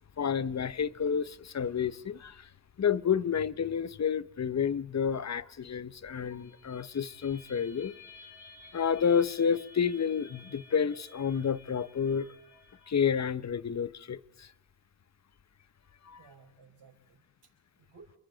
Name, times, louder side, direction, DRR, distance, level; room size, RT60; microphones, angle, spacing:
voice 1, 0.2-2.5 2.8-7.9 8.7-12.3 12.9-14.5 16.0-16.2, left 7 dB, 35° left, 0.8 m, -30 dB
sound 1, 6.2-12.9, left 3 dB, 80° left, 8.0 m, -54 dB
voice 2, 16.2-18.2, right 4 dB, 60° right, 4.9 m, -58 dB
27.0 x 24.0 x 4.0 m
cardioid pair, 80°, 47 cm